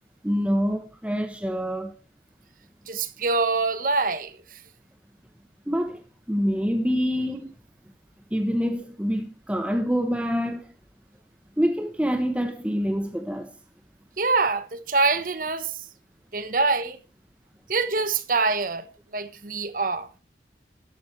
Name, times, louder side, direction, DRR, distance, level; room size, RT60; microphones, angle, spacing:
voice 1, 0.2-1.9 5.7-6.0 6.3-7.5 8.3-10.7 11.6-13.5, equal, 5° right, 0.9 m, -26 dB
voice 2, 2.9-4.3 14.2-15.7 16.3-17.0 17.7-18.9 19.1-20.1, right 3 dB, 50° right, 1.2 m, -24 dB
12.5 x 12.0 x 3.3 m
head